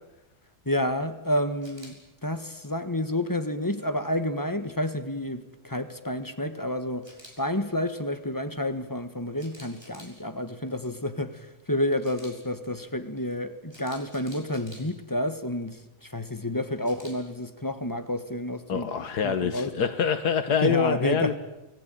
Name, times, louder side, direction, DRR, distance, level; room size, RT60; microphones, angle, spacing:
voice 1, 0.6-1.9 2.2-7.1 7.4-18.9 19.2-19.7 20.6-21.3, left 1 dB, 15° left, 1.5 m, -29 dB
Camera, 1.6-1.9 7.0-7.3 9.4-10.1 12.0-12.3 13.7-14.8 16.8-17.1, equal, 15° right, 6.5 m, -48 dB
voice 2, 18.7-21.4, left 7 dB, 85° left, 1.8 m, -25 dB
29.0 x 20.0 x 9.2 m
omnidirectional pair, 1.7 m